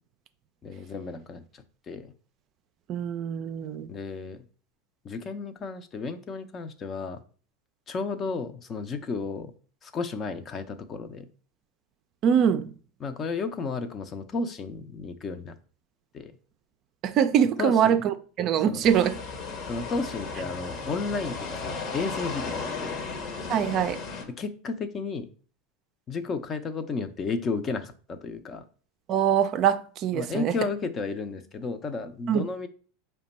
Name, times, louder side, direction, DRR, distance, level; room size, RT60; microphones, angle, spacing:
voice 1, 0.6-2.1 3.9-4.4 5.0-7.2 7.9-9.5 9.8-11.3 13.0-15.6 16.1-16.3 17.6-18.0 18.7-18.8 19.6-23.0 24.3-25.3 26.1-28.6 30.1-32.7, left 4 dB, 35° left, 0.5 m, -33 dB
voice 2, 2.9-3.9 12.2-12.7 17.0-19.2 23.5-24.0 29.1-30.5 32.3-32.5, right 8 dB, 45° right, 0.4 m, -23 dB
sound 1, 18.8-24.2, left 4 dB, 50° left, 0.9 m, -35 dB
4.9 x 2.2 x 4.2 m
hypercardioid pair, 95°, 0 cm